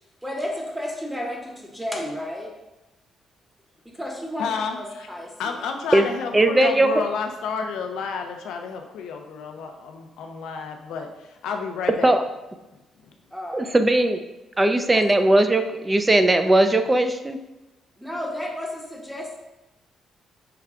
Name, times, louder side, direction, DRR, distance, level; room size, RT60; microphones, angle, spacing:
voice 1, 0.2-2.6 3.8-5.6 13.3-13.7 14.9-15.0 18.0-19.4, left 1 dB, 5° right, 1 dB, 0.9 m, -32 dB
voice 2, 4.4-4.8 5.4-12.1, left 5 dB, 85° left, 4 dB, 0.5 m, -30 dB
voice 3, 6.3-6.9 12.0-12.2 13.5-14.2 14.6-17.4, right 1 dB, 20° right, 7 dB, 0.4 m, -18 dB
5.7 x 2.3 x 3.6 m, 1.0 s
cardioid pair, 90°, 0 cm